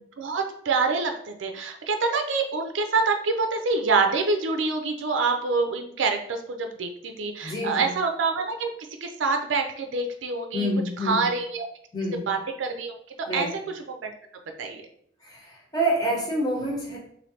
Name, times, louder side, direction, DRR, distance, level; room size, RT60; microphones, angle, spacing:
voice 1, 0.2-1.1 1.4-8.7 9.0-10.7 11.1-11.6 12.3-13.5 14.0-14.1 14.6-14.8, right 4 dB, 85° right, 4 dB, 0.4 m, -26 dB
voice 2, 7.4-8.0 10.5-11.3 11.9-12.3 13.3-13.6 15.2-17.0, equal, 20° left, -2 dB, 0.9 m, -27 dB
3.1 x 2.6 x 4.2 m, 0.68 s
head